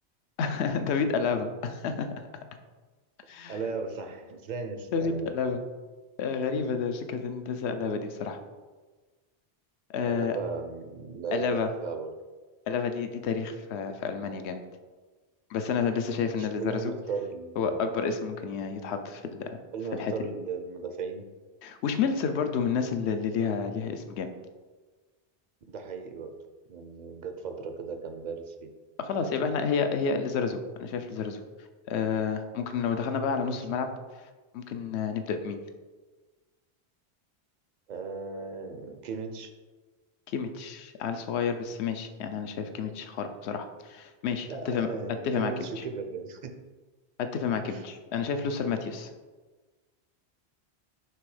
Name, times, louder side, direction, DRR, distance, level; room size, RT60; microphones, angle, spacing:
voice 1, 0.4-2.1 3.3-3.6 4.9-5.6 6.2-8.4 9.9-10.4 11.3-11.7 12.7-14.6 15.5-16.9 17.6-19.5 19.9-20.3 21.6-24.3 29.0-31.4 31.9-33.9 34.5-35.6 40.3-44.9 45.2-45.8 47.2-49.1, left 6 dB, 80° left, 8 dB, 0.9 m, -30 dB
voice 2, 3.5-5.3 10.0-12.1 16.4-17.6 19.7-21.3 25.7-26.3 26.7-28.7 33.4-33.7 37.9-39.5 44.5-46.5 47.7-47.9, right 5 dB, 55° right, 6 dB, 0.6 m, -36 dB
6.1 x 3.4 x 4.8 m, 1.3 s
omnidirectional pair, 1.1 m